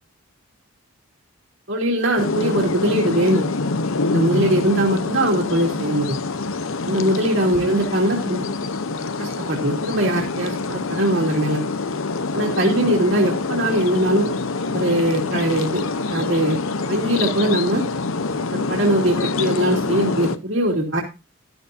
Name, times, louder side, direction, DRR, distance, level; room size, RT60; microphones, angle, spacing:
voice 1, 1.7-3.5 4.1-6.2 6.9-8.5 9.2-11.6 12.3-14.3 14.7-15.8 16.1-16.6 16.9-17.8 18.5-21.0, right 1 dB, 55° right, -2 dB, 2.7 m, -21 dB
sound 1, 2.2-20.4, left 3 dB, 70° left, 0.8 m, -25 dB
13.0 x 13.0 x 2.6 m, 0.27 s
head